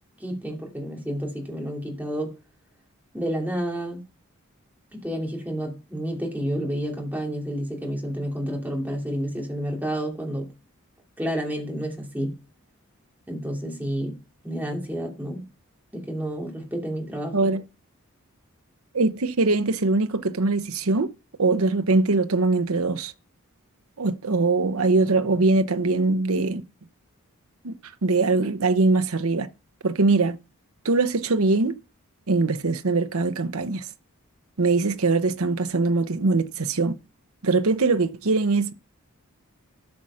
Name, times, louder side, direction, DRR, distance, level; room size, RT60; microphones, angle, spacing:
voice 1, 0.2-2.3 3.1-4.0 4.9-10.5 11.2-12.4 13.3-15.4 15.9-17.5, equal, 10° right, 2.7 m, -30 dB
voice 2, 18.9-21.1 21.4-23.1 24.0-26.6 27.6-27.7 28.0-29.5 29.8-30.4 30.8-31.7 32.3-33.9 34.6-37.0 37.4-38.7, right 3 dB, 75° right, 0.9 m, -22 dB
13.0 x 6.4 x 5.6 m
head